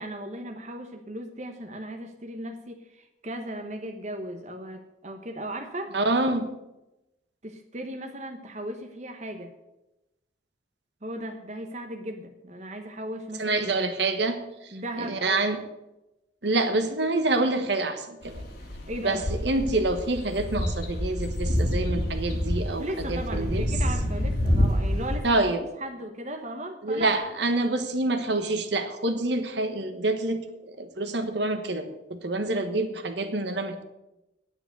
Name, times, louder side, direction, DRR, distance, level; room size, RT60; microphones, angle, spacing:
voice 1, 0.0-5.9 7.4-9.5 11.0-13.6 14.7-15.6 18.9-19.2 22.8-25.4 25.8-27.1, right 1 dB, 40° right, 4 dB, 1.1 m, -36 dB
voice 2, 5.9-6.5 13.4-15.6 16.4-18.4 19.0-23.6 25.2-25.6 26.8-33.8, right 2 dB, 65° right, 8 dB, 1.3 m, -27 dB
sound 1, 18.2-25.2, left 1 dB, 55° left, 3.2 m, -28 dB
9.7 x 8.8 x 8.0 m, 0.95 s
head